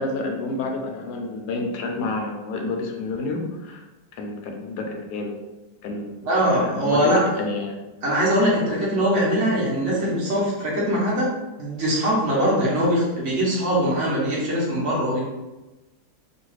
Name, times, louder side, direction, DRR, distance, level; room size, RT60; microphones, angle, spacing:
voice 1, 0.0-3.8 4.1-5.4 5.8-6.3 6.6-7.8, left 3 dB, 85° left, 3 dB, 1.1 m, -29 dB
voice 2, 6.2-7.2 8.0-11.3 11.6-15.2, equal, 55° right, -6 dB, 1.1 m, -22 dB
3.1 x 2.3 x 3.1 m, 1.1 s
omnidirectional pair, 1.7 m